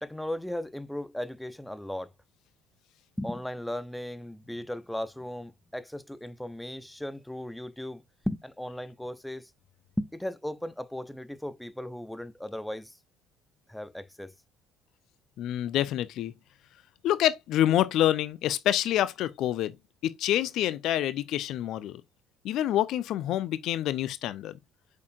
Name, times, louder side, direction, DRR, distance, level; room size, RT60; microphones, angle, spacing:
voice 1, 0.0-2.1 3.2-9.5 10.0-12.9 13.7-14.3, left 1 dB, 5° left, 0.8 m, -36 dB
voice 2, 15.4-16.3 17.0-19.7 20.0-22.0 22.4-24.5, left 12 dB, 55° left, 0.7 m, -27 dB
8.4 x 6.7 x 2.5 m
figure-of-eight pair, 55°, 0 cm